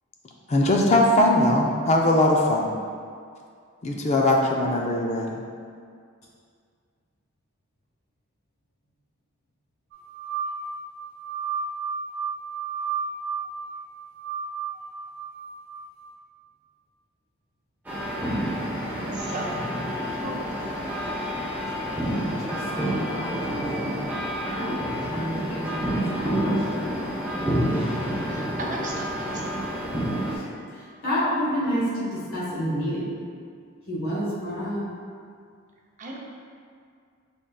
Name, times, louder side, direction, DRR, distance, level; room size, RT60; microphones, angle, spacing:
voice 1, 0.5-2.7 3.8-5.4, left 1 dB, 35° left, 0 dB, 0.4 m, -20 dB
sound 1, 9.9-15.9, right 5 dB, 75° right, 1.1 m, -33 dB
sound 2, 17.8-30.3, equal, 10° right, 0.8 m, -28 dB
voice 2, 19.1-19.6 20.1-20.9 28.3-29.6 36.0-36.2, right 2 dB, 40° right, -2 dB, 0.6 m, -36 dB
voice 3, 22.1-24.0 24.4-26.9 30.3-30.4 31.0-33.1 33.9-34.8, equal, 85° left, -7 dB, 1.4 m, -30 dB
5.3 x 3.7 x 2.3 m, 2.2 s
head